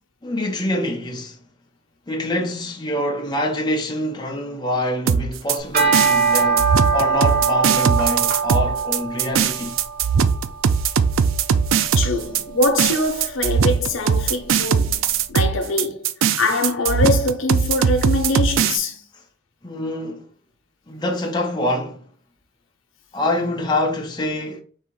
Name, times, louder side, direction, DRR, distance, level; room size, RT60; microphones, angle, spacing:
voice 1, 0.2-1.4 2.1-9.8 19.6-20.3 20.9-22.0 23.1-24.6, left 1 dB, 20° left, 0.7 m, -25 dB
sound 1, 5.1-18.8, right 7 dB, 80° right, 0.4 m, -20 dB
sound 2, 5.6-14.9, right 5 dB, 45° right, 1.0 m, -24 dB
voice 2, 11.9-16.1 16.4-19.0, left 2 dB, 80° left, 0.9 m, -23 dB
4.2 x 2.8 x 3.7 m
head